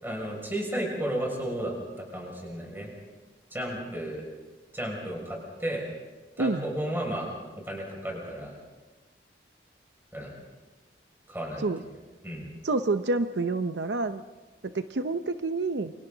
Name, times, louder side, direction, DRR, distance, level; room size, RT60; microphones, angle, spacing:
voice 1, 0.0-2.9 3.5-4.2 4.7-5.8 6.4-7.3 7.6-8.5 10.1-10.3 11.3-11.9 12.2-12.5, right 1 dB, 10° right, -1 dB, 6.1 m, -33 dB
voice 2, 12.6-14.2 14.6-15.9, right 3 dB, 80° right, 9 dB, 0.7 m, -28 dB
28.5 x 24.5 x 3.9 m, 1.2 s
head